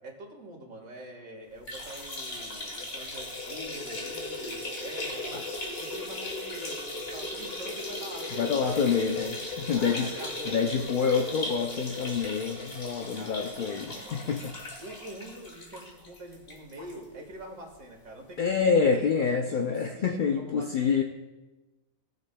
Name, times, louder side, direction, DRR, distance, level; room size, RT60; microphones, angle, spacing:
voice 1, 0.0-5.4 5.7-9.2 9.7-10.6 13.1-14.5 14.8-19.1 19.4-21.0, right 1 dB, 85° right, 0 dB, 2.0 m, -45 dB
sound 1, 1.6-17.0 17.3-17.4 17.7-17.8 18.8-18.9, left 2 dB, 50° left, 1.6 m, -37 dB
voice 2, 8.4-10.1 10.5-14.5 18.4-21.0, left 6 dB, 65° left, 3 dB, 0.5 m, -27 dB
18.0 x 6.6 x 2.2 m, 1.2 s
omnidirectional pair, 1.4 m